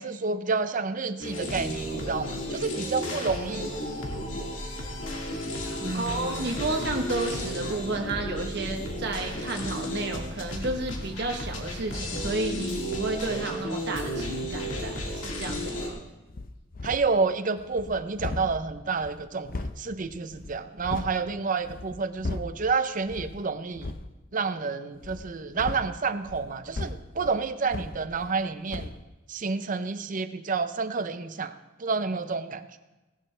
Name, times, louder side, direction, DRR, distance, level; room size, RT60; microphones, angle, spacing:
voice 1, 0.0-3.7 5.8-6.6 16.8-23.9 24.3-28.9 29.3-32.6, right 4 dB, 45° right, 11 dB, 0.7 m, -29 dB
sound 1, 1.2-15.9, equal, 85° left, 2.2 m, -33 dB
voice 2, 5.9-16.0, right 2 dB, 60° right, 3 dB, 1.1 m, -32 dB
sound 2, 16.3-17.2 17.6-21.2 21.6-22.7 23.1-23.4 23.7-24.1 25.0-28.4 28.7-29.0, left 2 dB, 50° left, 0.6 m, -37 dB
17.5 x 11.0 x 3.3 m, 1.1 s
head